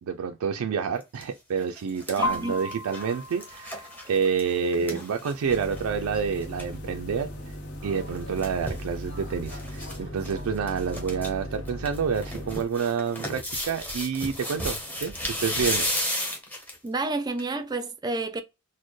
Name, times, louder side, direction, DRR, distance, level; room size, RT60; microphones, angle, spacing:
voice 1, 0.0-7.3 7.8-15.9, right 6 dB, 85° right, 0.4 m, -28 dB
sound 1, 1.0-1.2 1.6-5.8 6.2-6.3 6.4-6.7 7.9-8.9 9.5-10.0 10.2-10.3 10.7-11.3 11.7-16.9 17.4-17.5, equal, 10° left, 0.9 m, -33 dB
sound 2, 2.2-10.0, left 1 dB, 85° left, 0.5 m, -39 dB
voice 2, 2.2-2.6 4.9-5.0 16.8-18.4, right 2 dB, 20° right, 0.4 m, -30 dB
sound 3, 5.4-12.6, equal, 65° left, 1.0 m, -37 dB
4.1 x 2.1 x 3.1 m
head